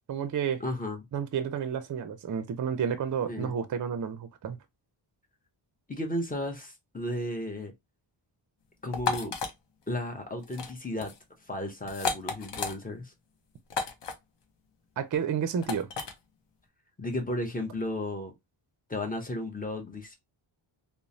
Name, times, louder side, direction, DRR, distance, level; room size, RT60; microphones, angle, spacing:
voice 1, 0.1-0.6 1.1-4.6 15.0-15.9, right 7 dB, 45° right, 0.4 m, -31 dB
voice 2, 0.6-1.0 3.3-3.5 5.9-7.7 8.8-9.3 9.9-11.1 11.5-13.1 17.0-18.3 18.9-20.1, left 1 dB, 20° left, 0.7 m, -34 dB
sound 1, 8.9-9.5 10.4-10.7 11.0-11.2 11.9-12.7 13.7-14.1 15.6-16.1, left 5 dB, 65° left, 0.7 m, -32 dB
3.0 x 2.0 x 2.5 m
wide cardioid pair, 105°, 47 cm